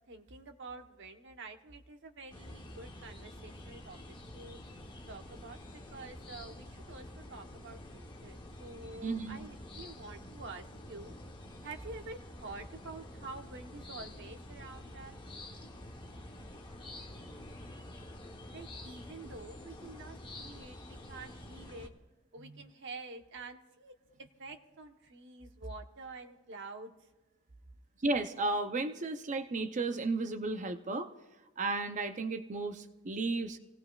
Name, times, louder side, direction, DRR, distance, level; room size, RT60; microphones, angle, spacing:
voice 1, 0.1-4.6 5.1-11.1 11.6-15.2 18.5-21.9 22.3-23.9 24.2-26.9, right 3 dB, 55° right, 5 dB, 1.0 m, -48 dB
sound 1, 2.3-21.9, left 1 dB, 20° left, 1.0 m, -48 dB
voice 2, 9.0-9.4 22.4-22.7 28.0-31.1 31.6-33.6, right 3 dB, 35° right, 9 dB, 0.5 m, -34 dB
26.5 x 17.5 x 2.4 m, 1.1 s
head